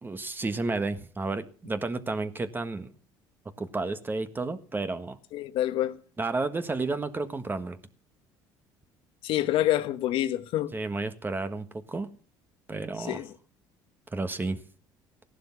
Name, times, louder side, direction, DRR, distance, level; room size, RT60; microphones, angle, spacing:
voice 1, 0.0-2.9 3.6-5.2 6.2-7.8 10.7-12.1 12.7-13.2 14.1-14.6, right 3 dB, 20° right, 1.5 m, -31 dB
voice 2, 5.3-6.0 9.2-10.7 13.0-13.3, left 13 dB, 65° left, 1.3 m, -27 dB
16.0 x 11.5 x 5.9 m
supercardioid pair, 85°, 10 cm